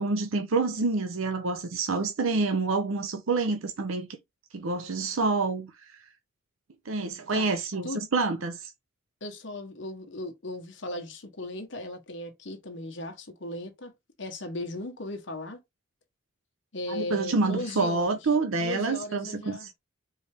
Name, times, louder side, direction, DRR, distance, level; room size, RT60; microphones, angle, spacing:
voice 1, 0.0-4.1 4.5-6.0 6.9-8.7 16.9-19.7, right 3 dB, 85° right, 0.6 m, -27 dB
voice 2, 7.3-8.0 9.2-13.9 14.2-15.6 16.7-18.2 18.6-19.7, left 1 dB, 65° left, 1.1 m, -37 dB
4.5 x 3.2 x 3.4 m
head